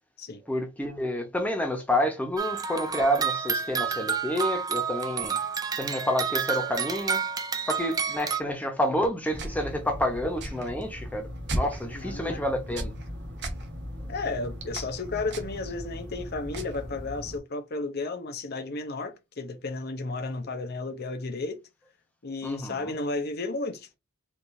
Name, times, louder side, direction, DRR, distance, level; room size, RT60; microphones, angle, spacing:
voice 1, 0.5-5.4 5.8-7.2 7.7-12.9 22.4-22.9, equal, 10° left, 0.9 m, -29 dB
sound 1, 2.4-8.4, right 6 dB, 20° right, 0.4 m, -29 dB
sound 2, 9.3-17.4, equal, 60° right, 1.1 m, -36 dB
voice 2, 11.9-12.4 14.1-21.6 22.2-24.0, left 3 dB, 50° left, 0.7 m, -33 dB
4.6 x 2.6 x 2.6 m
head